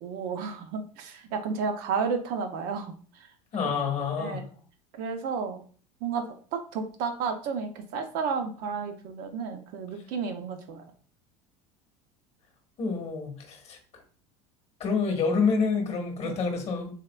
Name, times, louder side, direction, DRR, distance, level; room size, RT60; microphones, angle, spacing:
voice 1, 0.0-2.9 4.2-4.5 4.9-5.6 6.0-10.8 16.2-16.4, right 5 dB, 60° right, 6 dB, 0.5 m, -32 dB
voice 2, 3.5-4.4 12.8-13.8 14.8-16.9, left 5 dB, 40° left, 4 dB, 1.0 m, -28 dB
3.5 x 2.3 x 2.2 m, 0.42 s
supercardioid pair, 100°, 17 cm